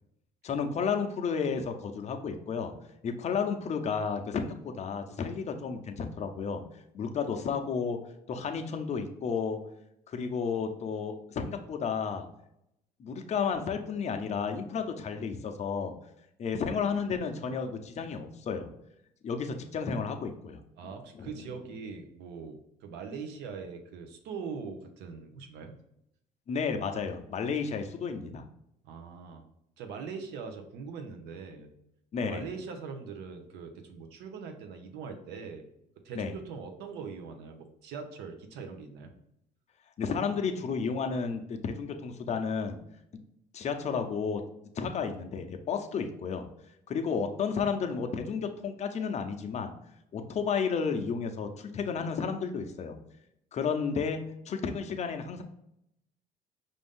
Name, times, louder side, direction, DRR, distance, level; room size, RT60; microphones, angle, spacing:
voice 1, 0.4-2.7 3.0-6.6 6.9-8.0 8.3-9.6 10.1-12.2 13.0-15.9 16.4-18.7 19.2-20.6 21.1-21.3 26.5-28.4 32.1-32.4 36.1-36.3 40.0-42.8 43.5-44.4 44.8-46.5 46.9-49.7 50.1-53.0 53.5-54.2 54.5-55.4, left 6 dB, 40° left, 5 dB, 0.6 m, -32 dB
voice 2, 20.8-25.8 28.8-29.4 29.8-31.7 32.2-35.7 36.0-39.1, right 5 dB, 85° right, 5 dB, 0.7 m, -42 dB
5.2 x 2.6 x 3.6 m, 0.79 s
cardioid pair, 110°, 17 cm